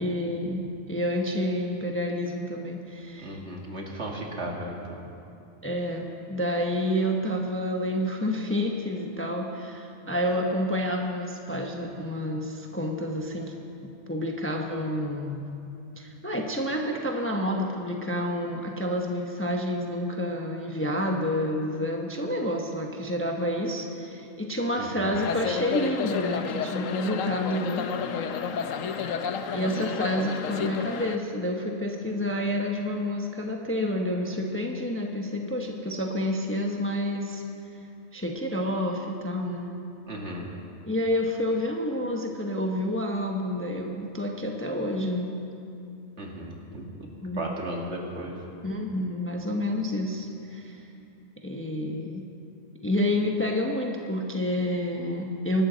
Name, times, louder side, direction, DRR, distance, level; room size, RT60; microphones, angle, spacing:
voice 1, 0.0-3.4 5.6-13.5 14.1-15.4 16.0-27.8 29.5-37.4 38.1-39.7 40.8-45.3 47.2-47.5 48.6-50.8 51.4-52.2 52.8-55.7, left 1 dB, 10° left, 1 dB, 1.0 m, -29 dB
voice 2, 3.2-5.0 24.8-25.1 40.1-40.5 46.2-46.9 47.4-48.4, right 1 dB, 55° right, -1 dB, 2.3 m, -35 dB
sound 1, 25.1-31.2, left 6 dB, 70° left, 1.1 m, -31 dB
24.5 x 12.5 x 4.1 m, 2.6 s
omnidirectional pair, 1.4 m